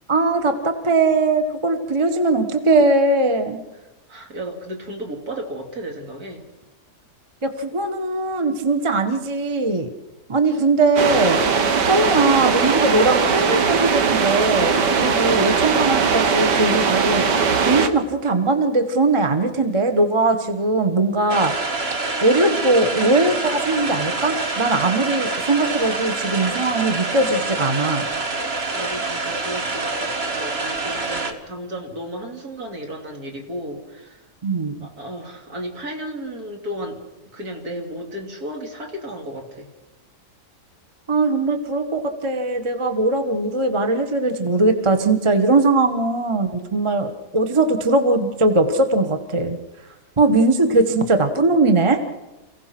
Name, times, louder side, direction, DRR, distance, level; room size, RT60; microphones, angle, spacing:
voice 1, 0.1-3.6 7.4-9.9 10.3-11.4 11.8-21.5 22.2-28.1 34.4-34.9 41.1-49.6 50.2-52.0, right 2 dB, 20° right, 8 dB, 1.2 m, -20 dB
voice 2, 4.1-6.4 10.5-10.6 28.7-34.2 34.8-37.0 37.3-39.7, right 1 dB, 60° right, 2 dB, 3.5 m, -34 dB
sound 1, 11.0-17.9, right 5 dB, 85° right, 2.0 m, -19 dB
sound 2, 21.3-31.3, right 3 dB, 40° right, 1.8 m, -26 dB
28.0 x 16.5 x 6.0 m, 1.0 s
omnidirectional pair, 1.8 m